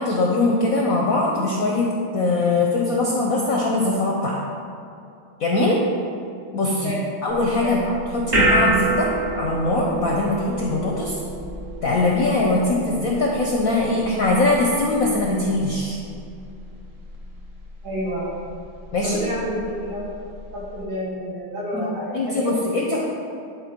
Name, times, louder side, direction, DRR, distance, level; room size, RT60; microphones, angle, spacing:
voice 1, 0.0-4.4 5.4-5.8 6.5-6.9 7.2-9.1 9.3-11.2 11.8-16.0 18.9-19.2 21.7-21.9 22.1-23.0, left 2 dB, 65° left, -2 dB, 0.8 m, -21 dB
sound 1, 7.3-20.8, right 2 dB, 40° right, 0.9 m, -29 dB
voice 2, 17.8-18.3 19.0-20.1 20.5-22.5, equal, 70° right, -7 dB, 2.6 m, -29 dB
9.7 x 3.9 x 4.4 m, 2.5 s
omnidirectional pair, 2.3 m